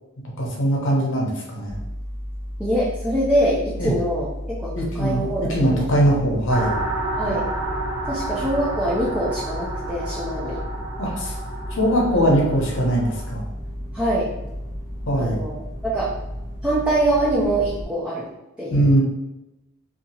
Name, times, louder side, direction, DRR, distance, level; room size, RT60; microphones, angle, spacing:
voice 1, 0.4-1.8 3.8-3.9 4.7-6.8 11.0-11.4 11.7-13.5 15.1-15.4 18.7-19.0, right 1 dB, 55° left, -2 dB, 0.7 m, -21 dB
sound 1, 1.7-17.8, equal, 40° right, 0.8 m, -33 dB
voice 2, 2.6-4.3 4.6-5.8 7.1-7.5 8.1-10.6 13.9-14.3 15.1-15.5 15.8-16.1 16.6-18.3 18.6-18.9, right 1 dB, 5° right, -7 dB, 0.4 m, -24 dB
sound 2, 6.5-13.3, right 2 dB, 80° right, 0.8 m, -31 dB
2.8 x 2.3 x 2.8 m, 0.95 s
head